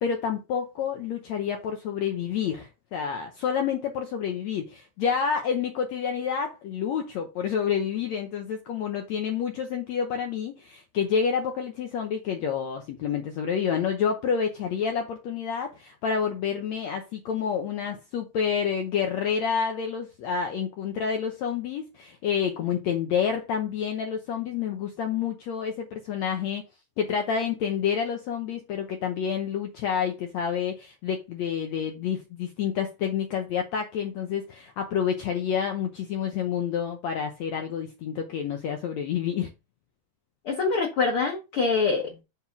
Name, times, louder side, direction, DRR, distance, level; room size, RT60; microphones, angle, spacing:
voice 1, 0.0-26.6 27.0-39.5, left 7 dB, 75° left, 1.7 m, -28 dB
voice 2, 40.4-42.2, left 4 dB, 55° left, 1.7 m, -25 dB
7.1 x 3.5 x 5.9 m
omnidirectional pair, 4.1 m